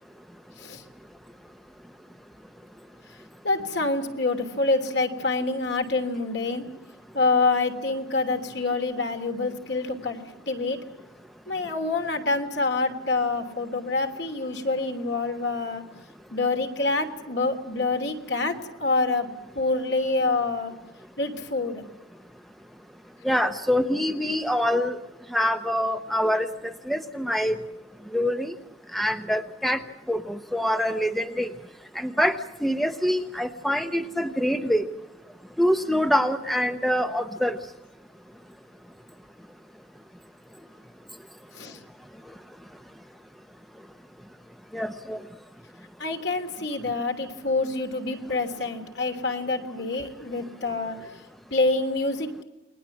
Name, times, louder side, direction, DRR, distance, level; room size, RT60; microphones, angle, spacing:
voice 1, 3.4-6.6 7.1-10.8 11.5-15.8 16.3-19.3 19.5-20.7 21.2-21.8 41.5-41.8 46.0-51.2 51.5-52.4, left 3 dB, 60° left, 5 dB, 3.2 m, -26 dB
voice 2, 23.2-25.0 25.3-27.6 28.1-28.5 28.9-29.8 30.1-31.5 31.9-34.9 35.6-37.6 44.7-45.2, equal, ahead, 8 dB, 0.8 m, -25 dB
29.0 x 21.5 x 7.3 m, 0.99 s
head